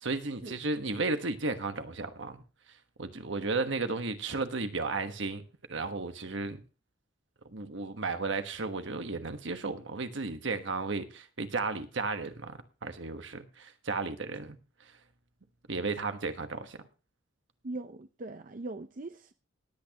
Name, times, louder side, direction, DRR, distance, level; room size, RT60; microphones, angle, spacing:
voice 1, 0.0-2.4 3.0-5.4 5.7-6.6 7.4-14.6 15.7-16.8, right 3 dB, 70° right, 1.3 m, -34 dB
voice 2, 17.6-19.3, right 2 dB, 45° right, 0.6 m, -40 dB
19.5 x 8.6 x 2.9 m
head